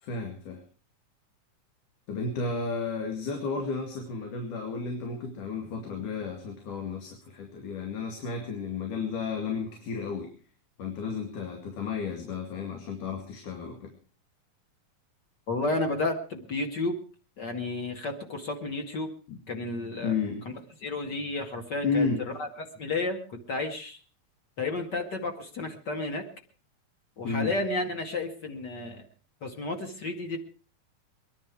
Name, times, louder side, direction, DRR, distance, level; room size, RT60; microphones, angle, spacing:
voice 1, 0.0-0.6 2.1-10.3 10.8-14.0 19.3-19.4 20.0-20.5 21.8-22.3 27.2-27.5, left 4 dB, 75° left, 3 dB, 3.6 m, -32 dB
voice 2, 15.5-17.0 17.4-19.1 19.5-20.1 20.8-22.1 22.4-24.0 24.6-26.2 27.2-29.0 29.4-30.4, left 2 dB, 35° left, 4 dB, 2.4 m, -32 dB
24.0 x 11.0 x 4.8 m, 0.38 s
omnidirectional pair, 3.7 m